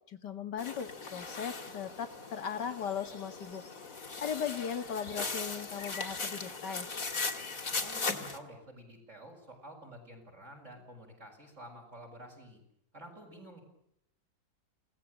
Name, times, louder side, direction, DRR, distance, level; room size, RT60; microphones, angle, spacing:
voice 1, 0.1-3.6 4.2-6.9, left 7 dB, 65° left, 9 dB, 2.4 m, -38 dB
sound 1, 0.6-8.4, left 4 dB, 45° left, 2.9 m, -38 dB
voice 2, 7.7-12.6 12.9-13.6, right 1 dB, 40° right, 3 dB, 7.0 m, -50 dB
29.5 x 18.5 x 8.9 m, 0.76 s
omnidirectional pair, 2.0 m